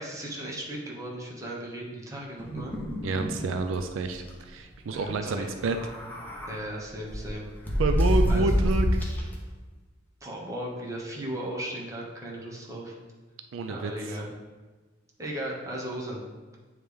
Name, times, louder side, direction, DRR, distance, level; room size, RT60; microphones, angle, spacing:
voice 1, 0.0-2.8 4.9-5.5 6.5-7.5 8.3-8.6 10.2-13.0 13.7-14.3 15.2-16.2, right 1 dB, 15° right, -4 dB, 1.0 m, -36 dB
sound 1, 2.4-3.4 3.7-3.8 4.1-4.3 5.5-6.6 7.1-9.3, equal, 10° left, 0.9 m, -27 dB
voice 2, 3.0-5.8 7.8-9.0 13.5-13.9, right 3 dB, 80° right, 6 dB, 0.4 m, -28 dB
8.7 x 3.2 x 3.4 m, 1.3 s
head